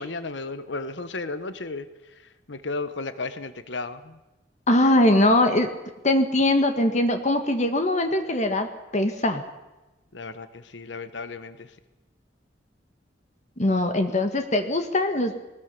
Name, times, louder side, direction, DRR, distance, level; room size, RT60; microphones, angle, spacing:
voice 1, 0.0-1.9 2.5-4.2 10.1-11.7, left 3 dB, 75° left, 12 dB, 1.2 m, -34 dB
voice 2, 4.7-5.7 6.0-8.7 8.9-9.4 13.6-15.4, left 1 dB, 40° left, 6 dB, 1.6 m, -21 dB
21.5 x 19.0 x 6.8 m, 1.1 s
head